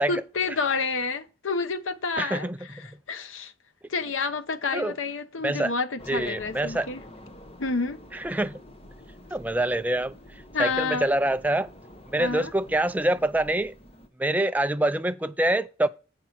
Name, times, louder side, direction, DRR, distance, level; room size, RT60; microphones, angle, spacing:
voice 1, 0.0-2.5 3.1-3.5 3.9-7.0 7.6-8.0 10.5-11.1 12.2-12.5, left 4 dB, 90° left, 0.8 m, -29 dB
voice 2, 2.2-2.6 2.9-3.0 4.7-4.9 5.4-5.7 6.1-6.9 8.1-8.6 9.3-10.2 10.6-11.7 12.1-13.7 14.2-15.9, right 1 dB, 10° right, 0.3 m, -25 dB
sound 1, 6.0-14.1, left 1 dB, 30° left, 1.0 m, -48 dB
7.4 x 5.4 x 5.8 m
head